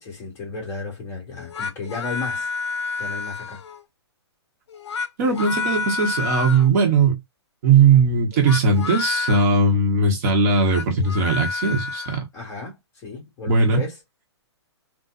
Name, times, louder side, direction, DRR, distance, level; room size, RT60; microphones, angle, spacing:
voice 1, 0.0-2.5 3.0-3.6 12.3-14.0, left 4 dB, 20° left, 1.5 m, -34 dB
sound 1, 1.4-3.8 4.7-6.7 8.3-9.5 10.5-12.2, left 4 dB, 75° left, 0.7 m, -29 dB
voice 2, 5.2-7.2 7.6-12.2 13.5-13.8, right 4 dB, 35° right, 1.0 m, -18 dB
4.1 x 2.2 x 2.3 m
hypercardioid pair, 155°, 15 cm